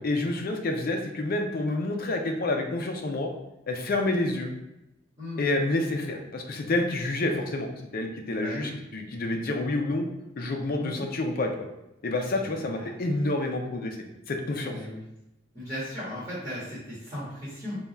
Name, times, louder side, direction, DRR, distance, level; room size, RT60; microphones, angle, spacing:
voice 1, 0.0-3.3 3.7-4.5 5.4-10.1 10.4-11.7 12.0-14.0 14.3-14.7, left 2 dB, 50° left, 3 dB, 0.5 m, -28 dB
voice 2, 8.3-8.8 10.8-11.0 12.4-12.9 14.6-15.0 15.5-17.8, left 1 dB, 15° right, -12 dB, 1.4 m, -37 dB
3.5 x 2.3 x 4.1 m, 0.93 s
head